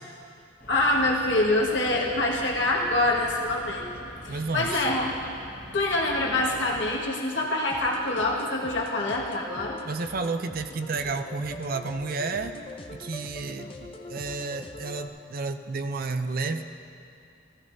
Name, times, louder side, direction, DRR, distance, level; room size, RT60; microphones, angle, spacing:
sound 1, 0.6-6.9, left 1 dB, 45° left, 2.0 m, -45 dB
voice 1, 0.7-3.8 4.2-5.1 5.7-9.8, left 2 dB, 70° left, -2 dB, 1.7 m, -25 dB
voice 2, 4.3-4.9 9.8-12.5 12.9-16.6, right 3 dB, 50° right, 8 dB, 0.5 m, -31 dB
sound 2, 7.7-15.1, left 2 dB, 30° left, 0.7 m, -43 dB
16.5 x 14.5 x 2.7 m, 2.5 s
head